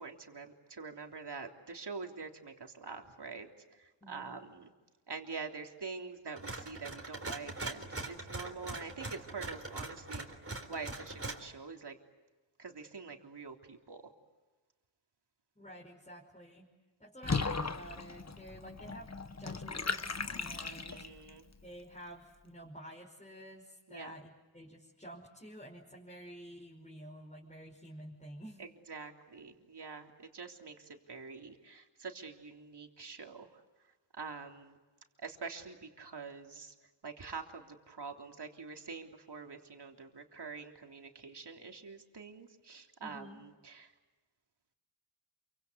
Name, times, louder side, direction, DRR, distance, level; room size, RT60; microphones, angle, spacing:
voice 1, 0.0-3.5 4.1-4.7 5.1-10.3 10.7-11.9 12.6-14.0 20.6-21.4 23.9-24.1 28.6-30.7 31.1-33.5 34.2-34.8 35.2-36.7 37.0-43.9, right 4 dB, 55° right, 3 dB, 3.5 m, -45 dB
voice 2, 4.0-4.4 15.5-16.7 17.0-19.1 19.4-21.0 21.6-28.6 43.0-43.4, equal, 15° left, -3 dB, 5.2 m, -50 dB
sound 1, 6.4-11.4, right 2 dB, 30° right, 3.9 m, -42 dB
Water / Bathtub (filling or washing), 17.2-21.3, left 4 dB, 35° left, 1.4 m, -37 dB
28.0 x 25.0 x 8.2 m, 1.2 s
wide cardioid pair, 80°, 48 cm